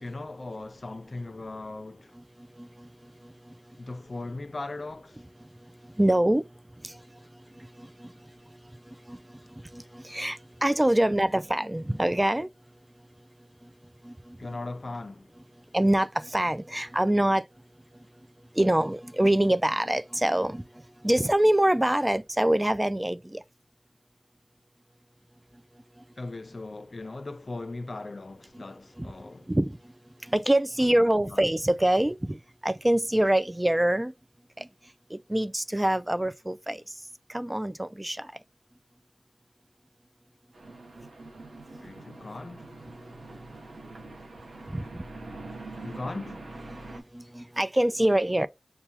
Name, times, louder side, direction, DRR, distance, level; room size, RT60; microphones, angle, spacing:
voice 1, 0.0-2.1 3.8-5.2 14.4-15.3 26.2-29.5 31.3-31.4 41.8-42.7 45.8-46.4, left 2 dB, 55° left, 0.4 m, -38 dB
voice 2, 2.6-2.9 3.2-3.5 6.0-6.5 6.8-7.0 7.6-8.1 9.1-9.2 9.7-12.5 14.0-14.6 15.7-17.5 18.6-20.6 21.0-23.4 28.5-28.6 29.0-29.1 29.5-29.8 30.3-32.4 32.6-34.1 34.6-34.7 35.1-36.8 37.3-38.3 44.7-45.0 46.7-48.5, right 1 dB, 20° right, 0.3 m, -25 dB
sound 1, 40.5-47.0, right 2 dB, 90° right, 0.9 m, -44 dB
6.6 x 2.2 x 2.9 m
cardioid pair, 40°, 0 cm